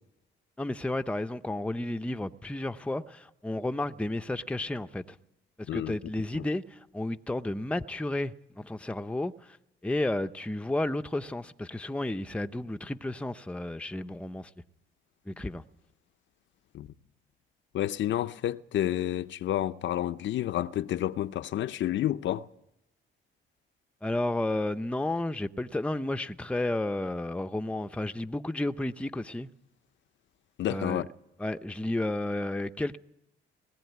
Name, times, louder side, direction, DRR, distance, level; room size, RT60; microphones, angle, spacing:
voice 1, 0.6-5.2 5.7-9.6 9.8-14.5 15.3-15.6 24.0-29.5 30.7-31.0 31.4-33.0, left 1 dB, 5° left, 0.7 m, -32 dB
voice 2, 5.7-6.0 6.3-6.4 16.7-16.9 17.7-22.5 30.6-31.1, left 12 dB, 70° left, 0.7 m, -30 dB
19.5 x 15.0 x 9.4 m
cardioid pair, 90°, 20 cm